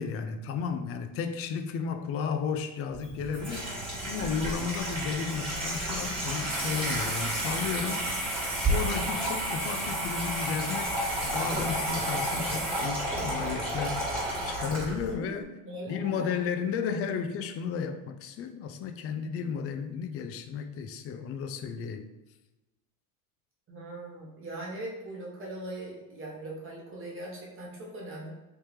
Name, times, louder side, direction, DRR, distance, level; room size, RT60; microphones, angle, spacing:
voice 1, 0.0-8.1 8.7-14.0 14.5-15.6 15.9-22.1, left 6 dB, 35° left, 8 dB, 0.4 m, -33 dB
Water tap faucet / Sink (filling or washing), 2.9-15.1, right 1 dB, 15° right, 1.5 m, -31 dB
voice 2, 15.1-16.4 23.7-28.3, right 1 dB, 30° right, -4 dB, 1.4 m, -40 dB
3.2 x 2.9 x 3.3 m, 1.1 s
supercardioid pair, 95°, 42 cm